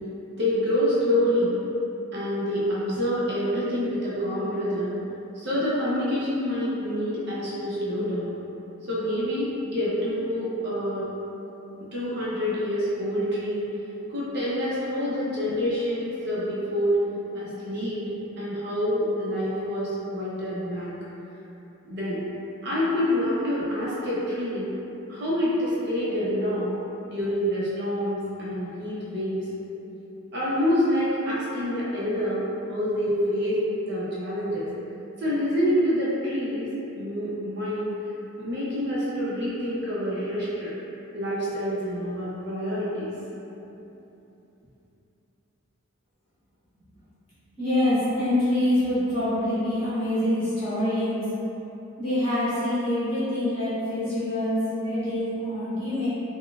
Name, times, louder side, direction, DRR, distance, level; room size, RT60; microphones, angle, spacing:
voice 1, 0.4-1.5 2.1-4.9 5.3-8.3 8.9-11.1 11.8-13.6 14.1-17.0 17.3-20.9 21.8-22.2 22.6-24.7 25.1-26.7 27.1-29.5 30.3-32.4 32.7-34.7 35.2-36.7 37.0-37.8 38.4-40.7 41.1-43.1, equal, 50° right, -8 dB, 0.6 m, -27 dB
voice 2, 47.6-51.2 52.0-56.1, left 1 dB, 25° left, -14 dB, 1.1 m, -25 dB
3.9 x 2.1 x 2.3 m, 3.0 s
head